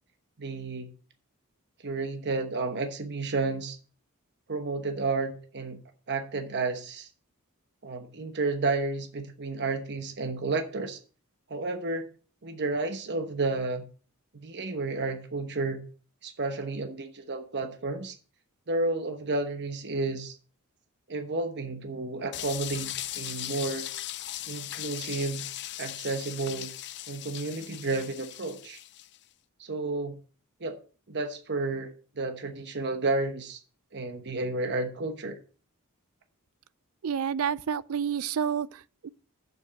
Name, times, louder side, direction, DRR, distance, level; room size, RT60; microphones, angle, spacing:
voice 1, 0.4-0.9 1.8-3.8 4.5-5.8 6.1-7.1 7.8-11.0 11.5-12.1 12.4-13.9 14.3-15.8 16.2-18.2 18.7-20.4 21.1-23.9 24.5-25.5 25.8-26.7 27.1-28.8 29.6-30.2 30.6-30.8 31.1-33.6 33.9-35.4, right 3 dB, 50° right, 1.1 m, -31 dB
sound 1, 22.3-29.2, left 14 dB, 50° left, 0.5 m, -38 dB
voice 2, 37.0-39.1, right 7 dB, 65° right, 0.4 m, -29 dB
7.3 x 7.1 x 6.3 m
head